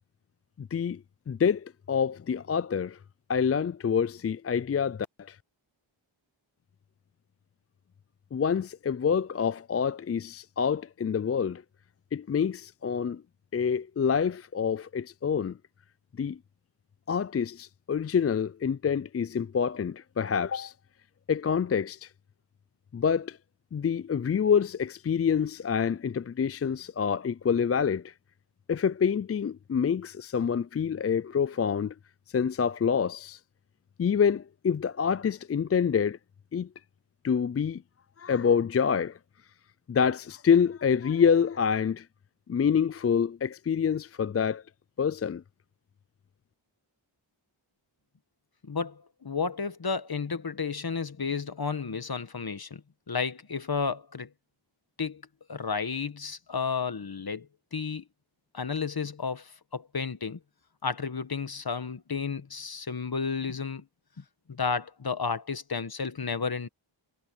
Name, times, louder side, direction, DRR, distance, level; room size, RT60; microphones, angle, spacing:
voice 1, 0.6-3.0 3.3-5.4 8.3-11.6 12.1-13.2 13.5-15.6 16.2-16.4 17.1-20.7 21.3-22.1 22.9-23.4 23.7-28.1 28.7-31.9 32.3-33.4 34.0-36.2 36.5-36.7 37.2-37.8 38.2-39.2 39.9-42.1 42.5-44.6 45.0-45.4, left 7 dB, 35° left, 0.4 m, -27 dB
voice 2, 48.6-52.8 53.1-54.3 55.0-55.2 55.5-58.0 58.5-60.4 60.8-63.8 64.5-66.7, left 5 dB, 50° left, 1.4 m, -32 dB
wide cardioid pair, 50°, 48 cm